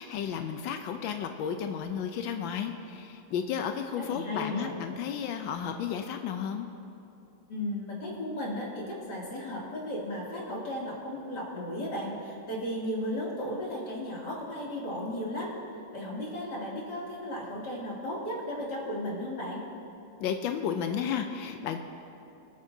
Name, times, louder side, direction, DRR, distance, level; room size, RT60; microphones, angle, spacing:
voice 1, 0.0-6.7 20.2-21.8, left 8 dB, 85° left, 6 dB, 1.4 m, -33 dB
voice 2, 4.0-4.7 7.5-15.5 15.9-19.6, left 1 dB, 60° left, -5 dB, 3.3 m, -35 dB
25.5 x 8.8 x 2.7 m, 2.9 s
omnidirectional pair, 2.0 m